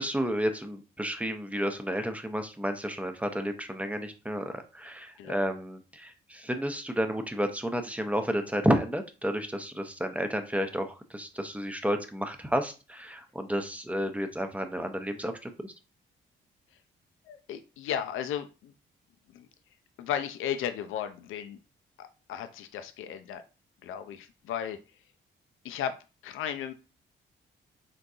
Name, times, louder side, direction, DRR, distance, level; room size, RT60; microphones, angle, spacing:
voice 1, 0.0-15.7, equal, 5° right, 6 dB, 0.6 m, -31 dB
voice 2, 17.3-18.7 19.3-19.5 20.0-21.6 22.0-23.4 23.8-24.8 25.6-26.0 26.2-26.7, left 9 dB, 80° left, 9 dB, 0.4 m, -35 dB
3.7 x 2.7 x 2.3 m, 0.31 s
cardioid pair, 65°, 21 cm